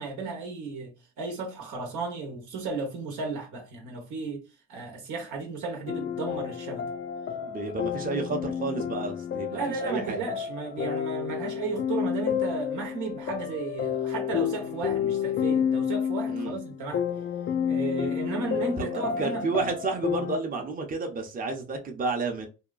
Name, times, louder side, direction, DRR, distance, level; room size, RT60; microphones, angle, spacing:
voice 1, 0.0-4.4 4.7-6.9 9.5-17.0 17.7-19.6 20.2-20.3, right 4 dB, 85° right, 1.0 m, -34 dB
sound 1, 5.9-20.4, left 8 dB, 40° left, 0.4 m, -30 dB
voice 2, 7.4-10.2 16.3-16.6 18.8-22.5, right 3 dB, 30° right, 0.6 m, -31 dB
2.8 x 2.2 x 2.4 m
cardioid pair, 90°, 30 cm